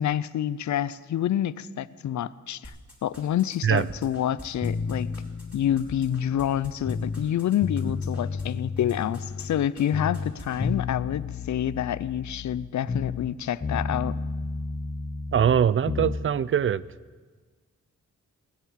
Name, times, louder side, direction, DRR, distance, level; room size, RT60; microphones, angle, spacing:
voice 1, 0.0-2.7 3.0-5.1 5.5-14.2, left 10 dB, 70° left, 17 dB, 0.5 m, -27 dB
sound 1, 2.6-8.4 8.8-9.5 9.8-9.9 10.1-10.6, left 1 dB, 5° right, 4.8 m, -44 dB
sound 2, 4.6-7.3 7.6-9.7 9.9-13.3 13.6-16.2, left 4 dB, 25° left, 0.7 m, -32 dB
voice 2, 15.3-16.8, right 8 dB, 45° right, 19 dB, 0.4 m, -22 dB
19.5 x 7.4 x 8.7 m, 1.5 s
wide cardioid pair, 130°, 30 cm